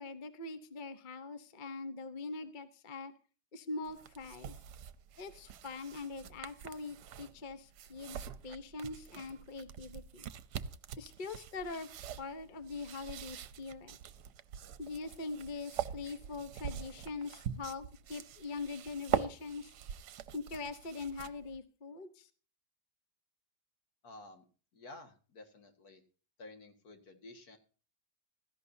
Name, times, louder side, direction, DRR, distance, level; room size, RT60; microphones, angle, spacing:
voice 1, 0.0-3.1 3.5-4.6 5.2-10.3 11.0-11.9 12.2-14.0 14.8-19.7 20.3-22.3, left 3 dB, 35° left, 10 dB, 0.9 m, -43 dB
sound 1, 3.8-21.6, right 9 dB, 75° right, 1.3 m, -43 dB
voice 2, 24.0-24.4 24.7-26.0 26.4-27.6, left 2 dB, 65° left, 6 dB, 2.3 m, -52 dB
16.5 x 14.0 x 2.7 m, 0.36 s
omnidirectional pair, 1.8 m